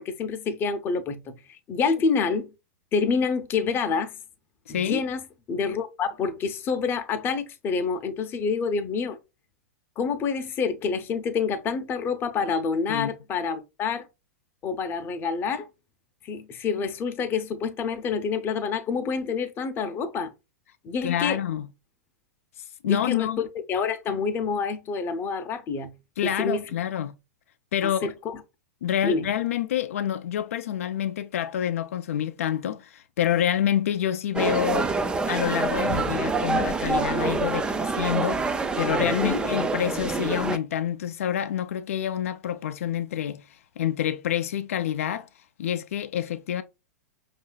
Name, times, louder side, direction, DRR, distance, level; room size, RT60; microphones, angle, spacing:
voice 1, 0.0-1.4 1.7-2.5 2.9-4.1 4.7-9.2 10.0-14.0 14.6-15.7 16.2-20.3 20.8-21.4 22.8-26.0 26.2-26.6 27.8-28.4 29.0-29.3 38.9-39.5, left 5 dB, 30° left, 0.6 m, -27 dB
voice 2, 4.7-5.0 12.9-13.1 21.0-21.7 22.8-23.4 26.2-27.1 27.7-28.1 28.8-34.9 35.3-43.4 43.8-45.3 45.6-46.6, left 10 dB, 70° left, 0.4 m, -27 dB
sound 1, 34.4-40.6, right 3 dB, 10° right, 0.3 m, -26 dB
5.4 x 2.5 x 2.2 m
hypercardioid pair, 105°, 8 cm